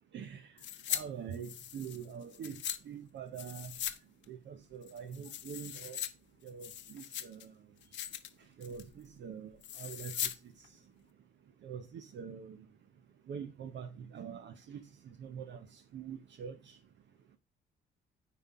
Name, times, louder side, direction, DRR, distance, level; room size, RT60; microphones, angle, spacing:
voice 1, 0.1-0.5 0.9-3.7 4.3-6.0 6.4-7.5 8.6-9.5 9.8-10.3 11.6-12.6 13.3-16.8, right 7 dB, 65° right, 0.8 m, -44 dB
sound 1, 0.6-1.0 1.3-2.8 3.4-4.0 4.2-4.3 4.8-6.1 6.5-7.4 7.8-8.3 8.6-8.9 9.6-10.4 10.6-10.7, left 10 dB, 65° left, 0.8 m, -40 dB
9.2 x 4.3 x 3.5 m
cardioid pair, 90°, 20 cm